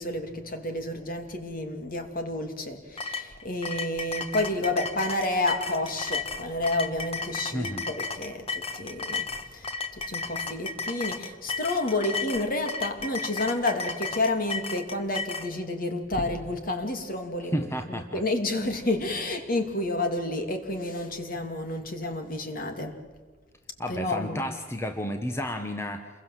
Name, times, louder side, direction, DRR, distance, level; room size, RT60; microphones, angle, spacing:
voice 1, 0.0-9.2 9.5-9.6 10.1-17.7 18.1-22.9 23.9-24.4, left 2 dB, 45° left, 5 dB, 2.6 m, -30 dB
sound 1, 3.0-15.5, left 4 dB, 30° left, 1.4 m, -34 dB
voice 2, 7.5-7.8 17.4-18.2 23.8-26.1, equal, 15° left, 6 dB, 1.3 m, -32 dB
28.0 x 22.5 x 7.6 m, 1.4 s
head